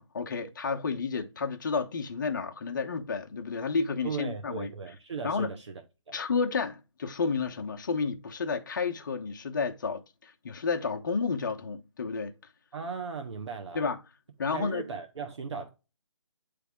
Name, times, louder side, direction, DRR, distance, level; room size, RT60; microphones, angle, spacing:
voice 1, 0.0-4.7 5.2-5.5 6.1-12.3 13.7-14.0 14.4-14.8, left 5 dB, 40° left, 0.9 m, -31 dB
voice 2, 4.0-5.7 6.1-6.2 12.7-13.9 14.5-15.7, right 5 dB, 60° right, 1.2 m, -37 dB
9.1 x 3.4 x 3.6 m
hypercardioid pair, 165°, 17 cm